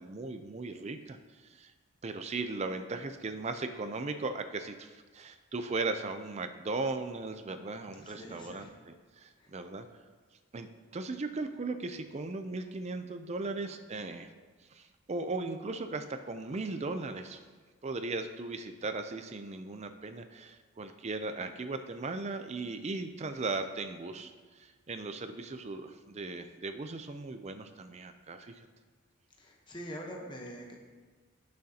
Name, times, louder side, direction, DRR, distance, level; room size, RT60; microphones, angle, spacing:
voice 1, 0.0-1.7 2.0-9.9 10.5-14.3 14.7-17.4 17.8-28.7, right 3 dB, 30° right, 8 dB, 0.4 m, -37 dB
voice 2, 8.0-8.7 9.4-9.5 29.4-30.8, equal, 20° left, 0 dB, 1.0 m, -44 dB
17.5 x 6.4 x 2.8 m, 1.4 s
head